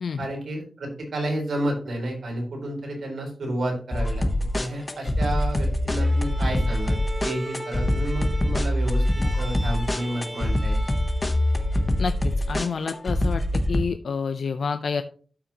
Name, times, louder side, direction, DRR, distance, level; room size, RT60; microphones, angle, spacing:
voice 1, 0.2-4.3 4.5-10.8, right 1 dB, 80° right, 0 dB, 3.8 m, -31 dB
sound 1, 3.9-13.8, left 1 dB, 20° left, 0.9 m, -24 dB
Bowed string instrument, 6.0-12.3, equal, 20° right, 2.9 m, -39 dB
voice 2, 12.0-13.4 13.7-15.0, left 5 dB, 70° left, 9 dB, 0.5 m, -28 dB
12.5 x 5.9 x 2.9 m, 0.40 s
wide cardioid pair, 155°, 0 cm